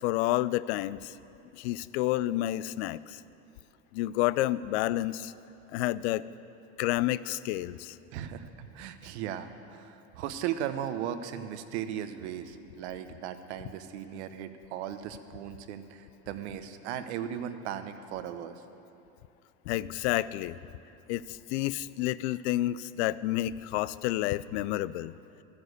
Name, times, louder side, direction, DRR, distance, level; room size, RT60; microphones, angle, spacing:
voice 1, 0.0-1.1 1.6-3.2 3.9-5.3 5.7-6.2 6.8-8.0 19.7-20.6 21.1-25.2, left 15 dB, 75° left, 18 dB, 0.5 m, -30 dB
voice 2, 8.1-18.5, right 10 dB, 75° right, 10 dB, 0.9 m, -37 dB
13.5 x 9.6 x 6.5 m, 2.7 s
supercardioid pair, 95°, 33 cm